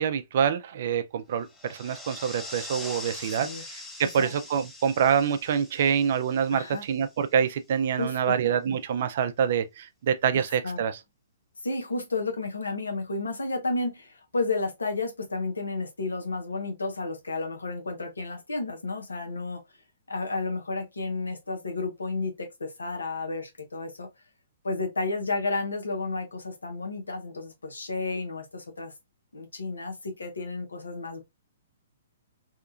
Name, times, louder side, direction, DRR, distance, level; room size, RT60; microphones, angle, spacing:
voice 1, 0.0-3.5 4.0-10.9, right 7 dB, 55° right, 0.4 m, -26 dB
sound 1, 1.4-7.3, left 2 dB, 5° left, 0.5 m, -42 dB
voice 2, 6.5-6.8 7.9-8.4 10.6-10.8 11.6-19.6 20.1-24.1 24.6-28.9 29.3-31.2, left 3 dB, 90° left, 0.7 m, -32 dB
2.8 x 2.3 x 2.3 m
hypercardioid pair, 130°, 0 cm